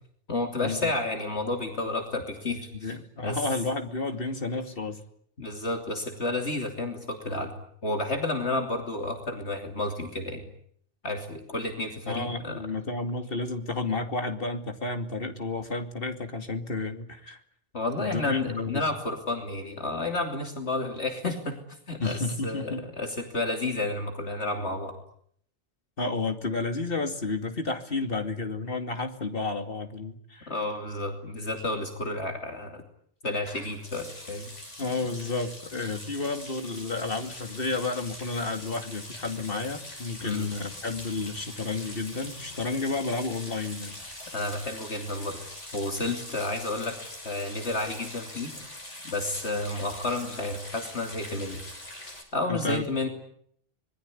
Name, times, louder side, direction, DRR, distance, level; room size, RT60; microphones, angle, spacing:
voice 1, 0.3-2.9 3.2-3.4 5.4-7.5 7.8-10.5 11.0-12.6 17.7-21.6 21.9-22.2 22.4-24.9 30.5-32.8 33.2-34.5 40.2-40.5 44.3-45.4 45.7-47.0 47.2-48.5 49.0-51.6 52.3-53.1, left 2 dB, 65° left, 4 dB, 3.3 m, -31 dB
voice 2, 2.7-5.0 12.1-17.4 18.0-18.9 22.0-22.9 26.0-30.5 34.8-44.0 52.5-52.8, left 3 dB, 50° left, 6 dB, 2.7 m, -31 dB
sound 1, 33.4-52.2, left 1 dB, 80° left, 6.4 m, -43 dB
25.5 x 21.5 x 9.9 m, 0.66 s
omnidirectional pair, 1.2 m